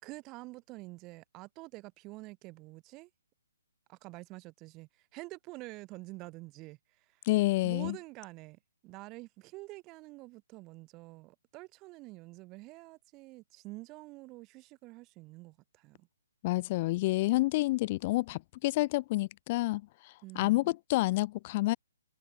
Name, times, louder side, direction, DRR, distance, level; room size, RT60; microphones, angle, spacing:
voice 1, 0.0-3.1 3.9-7.2 7.6-16.1 20.2-20.7, right 22 dB, 25° right, 4.0 m, -48 dB
voice 2, 7.3-8.0 16.4-19.8 20.4-21.8, left 19 dB, 35° left, 0.6 m, -28 dB
figure-of-eight pair, 135°, 0 cm